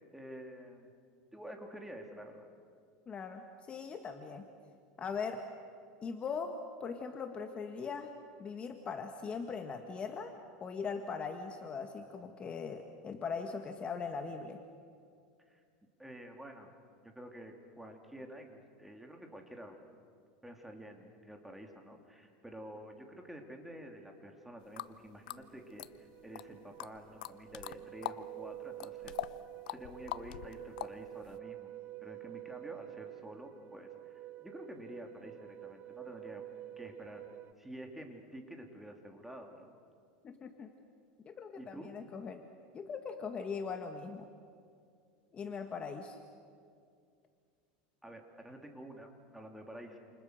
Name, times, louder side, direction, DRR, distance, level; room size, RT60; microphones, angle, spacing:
voice 1, 0.1-0.9 1.3-2.5 15.5-15.6 16.0-16.7 17.0-19.8 20.4-29.1 29.7-31.7 32.0-36.5 36.8-37.3 37.6-39.7 41.6-41.9 48.0-50.0, equal, 5° right, 3 dB, 3.3 m, -49 dB
voice 2, 3.1-4.5 5.0-5.5 6.0-8.1 8.4-14.6 40.2-40.7 41.2-42.4 42.7-44.3 45.3-46.2, left 5 dB, 25° left, 5 dB, 1.7 m, -40 dB
sound 1, 24.6-24.7 25.0-37.5, right 15 dB, 40° right, 0.8 m, -49 dB
sound 2, 24.8-24.9 25.3-26.4 26.8-28.2 28.5-31.4, left 15 dB, 80° left, 0.8 m, -42 dB
29.0 x 29.0 x 6.5 m, 2.3 s
supercardioid pair, 130°, 4 cm